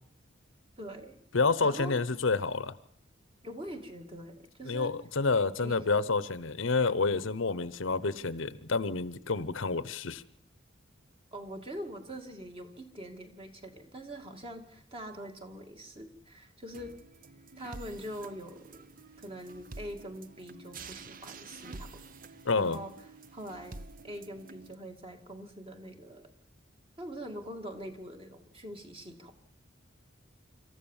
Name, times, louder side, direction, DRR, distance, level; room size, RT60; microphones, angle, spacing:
voice 1, 0.8-1.2 1.6-2.0 3.4-5.0 5.6-6.0 11.3-17.0 17.6-18.9 19.2-22.0 22.5-22.9 23.3-26.3 27.0-29.4, equal, 30° right, 5 dB, 2.2 m, -43 dB
voice 2, 1.3-2.7 4.7-10.2 22.4-22.8, left 4 dB, 80° left, 17 dB, 0.9 m, -29 dB
sound 1, 16.7-24.7, right 3 dB, 45° right, 0.7 m, -49 dB
26.0 x 14.5 x 7.3 m, 0.65 s
head